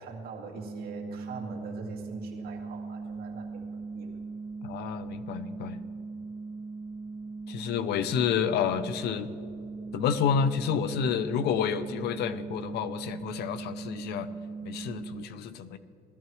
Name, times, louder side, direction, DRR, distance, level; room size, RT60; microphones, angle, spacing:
voice 1, 0.0-4.2, right 4 dB, 65° right, -1 dB, 2.2 m, -43 dB
sound 1, 0.6-15.3, right 4 dB, 20° right, 0.7 m, -39 dB
voice 2, 4.6-5.8 7.5-9.3 9.9-14.3 14.6-15.8, left 7 dB, 75° left, 13 dB, 0.6 m, -29 dB
18.5 x 14.0 x 3.1 m, 2.7 s
cardioid pair, 110°, 17 cm